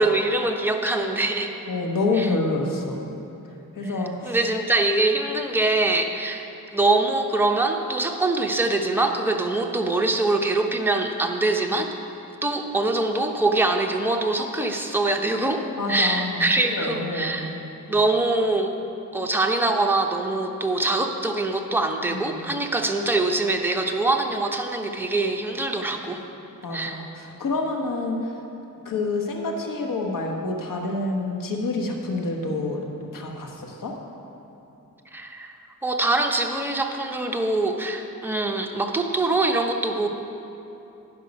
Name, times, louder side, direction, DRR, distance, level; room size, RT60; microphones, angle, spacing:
voice 1, 0.0-1.5 2.1-2.3 3.8-3.9 4.2-11.9 12.4-15.6 15.9-17.6 17.9-18.7 19.1-26.2 26.7-27.0 35.1-35.5 35.8-40.1, right 2 dB, 5° right, 2 dB, 0.8 m, -23 dB
voice 2, 1.7-3.0 3.8-4.3 15.8-17.6 22.1-22.4 26.6-28.2 28.8-32.8 33.1-33.9, left 2 dB, 70° left, 1 dB, 1.2 m, -27 dB
11.0 x 5.6 x 5.2 m, 2.9 s
cardioid pair, 70°, 34 cm